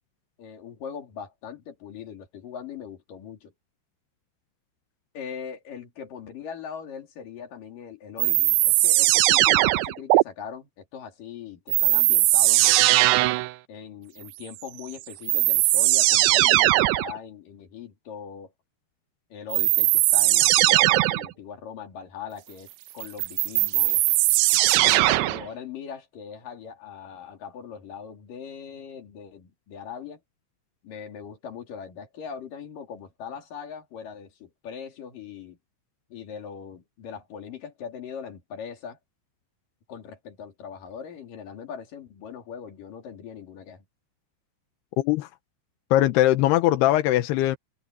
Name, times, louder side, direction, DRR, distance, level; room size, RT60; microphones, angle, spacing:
voice 1, 0.4-3.5 5.1-12.9 13.7-18.5 19.3-24.0 24.8-30.2 30.8-35.6 36.1-39.0 39.9-43.8, left 7 dB, 45° left, 4.4 m, -40 dB
sound 1, 8.2-10.2 11.7-13.5 14.8-14.9 15.3-17.1 19.5-21.3 23.0-25.5, right 18 dB, 80° right, 2.5 m, -19 dB
voice 2, 45.0-45.3 45.9-47.6, left 14 dB, 80° left, 2.5 m, -20 dB
open air
omnidirectional pair, 5.7 m